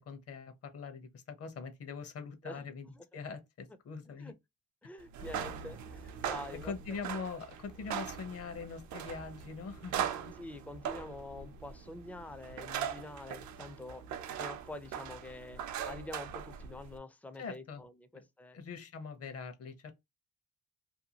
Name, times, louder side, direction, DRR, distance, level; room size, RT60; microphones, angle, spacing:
voice 1, 0.0-2.9 3.1-4.3 6.6-10.4 17.4-17.8 18.1-18.2 18.5-19.9, left 5 dB, 50° left, 0.8 m, -43 dB
voice 2, 4.8-6.7 10.4-14.0 14.4-18.6, left 2 dB, 5° left, 0.4 m, -46 dB
sound 1, 5.1-17.0, right 8 dB, 75° right, 0.5 m, -41 dB
2.7 x 2.2 x 2.7 m
cardioid pair, 90°, 30 cm